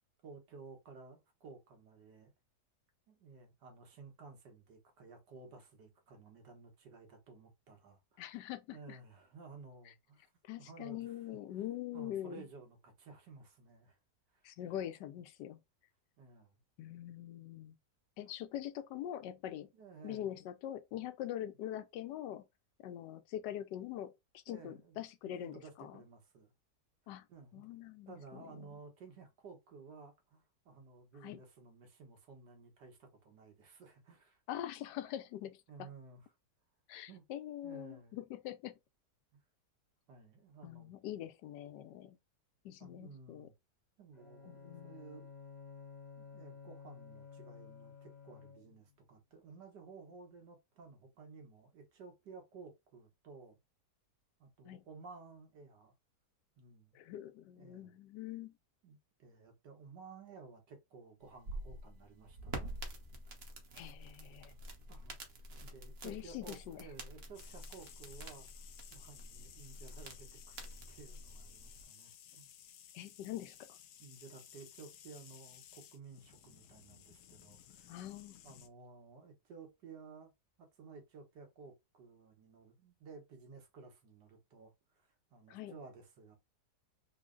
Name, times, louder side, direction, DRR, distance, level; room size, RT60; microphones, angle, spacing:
voice 1, 0.2-2.3 3.1-8.4 8.7-10.3 10.6-11.7 11.9-14.0 14.3-14.5 16.2-16.6 19.7-20.3 21.4-21.5 24.5-25.0 25.2-26.5 27.3-27.6 28.1-34.4 35.7-36.3 37.1-37.2 37.6-38.2 39.3-39.4 40.1-40.9 42.8-43.5 44.0-45.3 46.2-53.6 54.4-55.9 56.6-57.0 57.6-58.0 58.8-62.8 64.9-65.2 65.6-72.5 74.0-78.0 78.4-80.3 80.6-86.4, right 4 dB, 80° right, 1.7 m, -55 dB
voice 2, 8.2-9.0 10.4-12.4 14.4-15.6 16.8-17.8 18.2-19.7 20.0-22.4 22.8-26.0 27.1-27.3 27.5-28.8 31.2-31.4 34.5-35.9 36.9-38.7 40.6-42.2 42.6-43.5 44.5-45.0 54.6-54.8 56.9-58.5 63.8-64.5 66.0-66.9 72.9-73.8 77.9-78.4 85.5-85.8, left 12 dB, 85° left, 1.2 m, -44 dB
Bowed string instrument, 44.1-48.9, left 6 dB, 35° left, 0.7 m, -53 dB
sound 1, 61.2-71.8, right 1 dB, 45° right, 0.9 m, -48 dB
sound 2, 67.3-78.7, left 10 dB, 70° left, 0.9 m, -57 dB
3.9 x 2.1 x 3.7 m
omnidirectional pair, 1.8 m